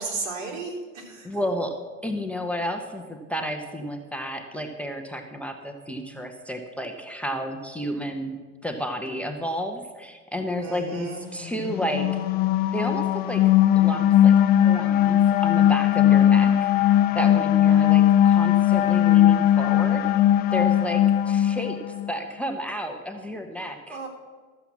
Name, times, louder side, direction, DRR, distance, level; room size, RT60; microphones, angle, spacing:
voice 1, 0.0-1.3 10.6-11.2 23.9-24.1, right 3 dB, 75° right, -1 dB, 3.8 m, -34 dB
voice 2, 1.2-1.7 2.0-12.1 12.7-13.4 13.8-20.1 20.5-21.8 22.1-24.0, equal, 5° left, 5 dB, 0.8 m, -31 dB
sound 1, 11.6-22.1, left 11 dB, 25° left, 0.4 m, -19 dB
13.0 x 7.8 x 7.2 m, 1.5 s
supercardioid pair, 135°, 40 cm